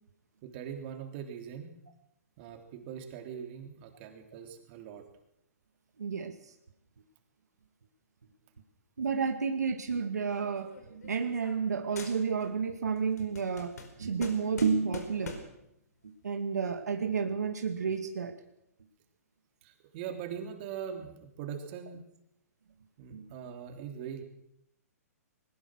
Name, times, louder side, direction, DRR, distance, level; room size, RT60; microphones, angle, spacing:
voice 1, 0.4-1.8 2.4-5.0 19.6-22.0 23.0-24.2, right 8 dB, 40° right, 4 dB, 3.5 m, -41 dB
voice 2, 6.0-6.3 9.0-13.7 14.0-15.4 16.2-18.3 23.1-23.3, right 5 dB, 90° right, 6 dB, 2.1 m, -31 dB
sound 1, 10.3-11.7 12.0-12.6 13.0-15.6, left 3 dB, 80° left, 4.8 m, -45 dB
20.5 x 19.5 x 6.5 m, 0.78 s
hypercardioid pair, 140°, 9 cm